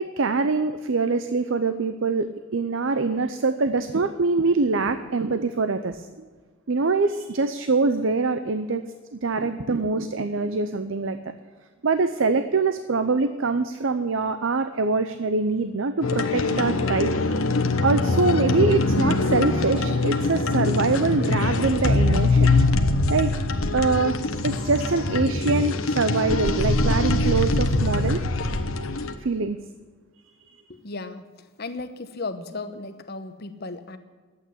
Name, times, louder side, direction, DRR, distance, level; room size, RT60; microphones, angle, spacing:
voice 1, 0.0-6.2 6.7-8.8 9.1-11.2 11.8-17.1 17.8-22.5 23.1-23.3 23.7-24.2 24.4-28.2 29.2-29.6, right 3 dB, 60° right, 10 dB, 0.6 m, -24 dB
sound 1, 16.0-29.1, left 2 dB, 70° left, 1.2 m, -23 dB
voice 2, 30.7-31.3 31.6-34.0, left 3 dB, 45° left, 9 dB, 1.0 m, -35 dB
12.0 x 8.6 x 9.7 m, 1.4 s
head